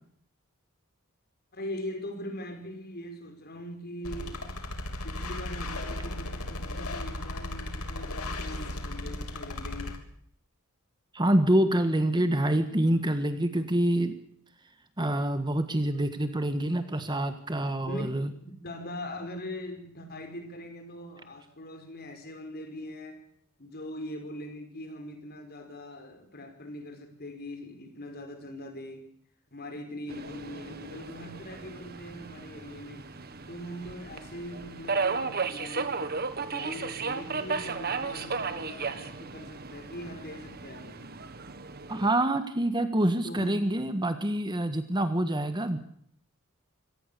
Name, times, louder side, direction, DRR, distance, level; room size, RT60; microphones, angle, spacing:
voice 1, 1.5-4.4 5.0-10.1 17.8-18.0 18.6-23.2 23.6-29.1 29.5-33.1 33.5-41.3 43.2-43.5, left 1 dB, 45° left, 5.0 m, -41 dB
sound 1, 4.0-10.0, left 1 dB, 75° left, 3.5 m, -36 dB
voice 2, 11.1-14.2 15.0-18.3 41.9-45.8, right 1 dB, 20° right, 1.6 m, -26 dB
Subway metro underground, 30.1-42.1, right 4 dB, 45° right, 1.7 m, -35 dB
25.5 x 18.0 x 6.9 m
head